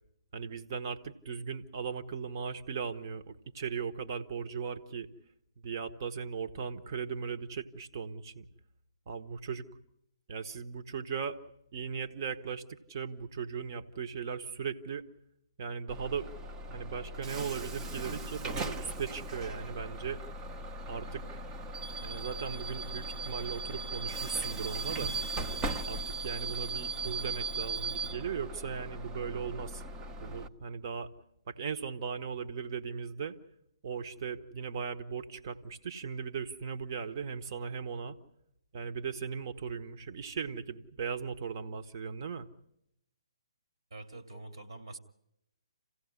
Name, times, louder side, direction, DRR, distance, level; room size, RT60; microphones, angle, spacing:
voice 1, 0.3-5.1 5.6-8.5 9.1-9.6 10.3-11.4 11.7-15.0 15.6-16.3 16.7-20.2 20.9-21.4 22.0-25.1 25.9-29.8 30.1-31.1 31.5-33.4 33.8-38.2 38.7-42.5, right 6 dB, 40° right, 7 dB, 1.4 m, -38 dB
Bus / Alarm, 15.9-30.5, right 2 dB, 20° right, 0.9 m, -38 dB
voice 2, 43.9-45.0, right 2 dB, 65° right, 7 dB, 2.5 m, -45 dB
28.0 x 16.0 x 9.7 m, 0.85 s
figure-of-eight pair, 130°, 3 cm